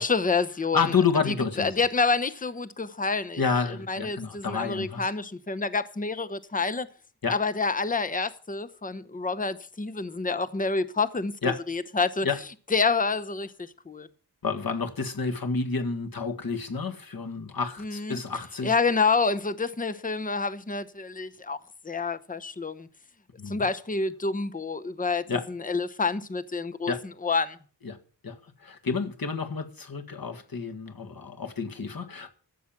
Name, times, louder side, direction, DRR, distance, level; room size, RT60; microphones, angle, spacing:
voice 1, 0.0-0.8 1.3-3.4 3.9-6.9 7.3-12.3 12.7-14.1 17.8-18.2 18.6-21.6 21.8-22.9 23.5-26.9 27.2-27.6, left 4 dB, 20° left, 0.8 m, -28 dB
voice 2, 0.7-1.7 3.4-5.1 7.2-7.4 11.4-11.6 12.2-12.4 14.4-18.7 23.4-23.7 25.3-25.5 26.9-27.1 27.8-28.0 28.2-32.3, left 5 dB, 55° left, 1.7 m, -29 dB
14.0 x 7.3 x 7.2 m
wide cardioid pair, 90°, 42 cm